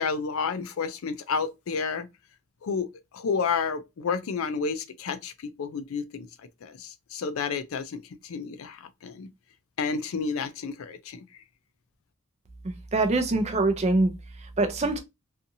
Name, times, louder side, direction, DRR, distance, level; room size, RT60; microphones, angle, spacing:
voice 1, 0.0-2.1 2.6-6.3 6.6-9.3 9.8-11.3, left 5 dB, 75° left, 0.4 m, -31 dB
voice 2, 12.6-14.1 14.6-15.0, right 2 dB, 30° right, 0.5 m, -24 dB
2.6 x 2.4 x 2.6 m
head